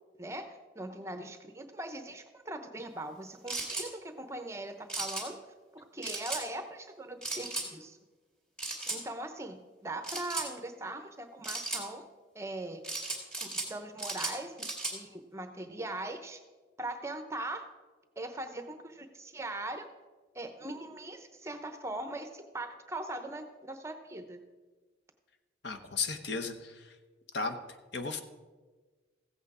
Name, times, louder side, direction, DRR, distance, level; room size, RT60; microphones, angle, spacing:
voice 1, 0.2-5.4 5.7-8.0 8.9-9.6 9.8-12.0 12.3-12.8 13.4-14.7 14.9-16.4 16.8-17.6 18.2-19.9 20.3-24.4, right 2 dB, 15° right, 8 dB, 0.8 m, -40 dB
sound 1, 3.5-3.9 4.9-5.3 6.0-6.4 7.2-7.7 8.6-9.0 10.0-10.5 11.4-11.8 12.8-13.7 14.0-15.0, right 2 dB, 5° left, 2.1 m, -36 dB
voice 2, 25.6-26.9 27.3-27.6 27.9-28.2, left 4 dB, 70° left, 6 dB, 0.9 m, -35 dB
15.0 x 8.2 x 4.9 m, 1.3 s
head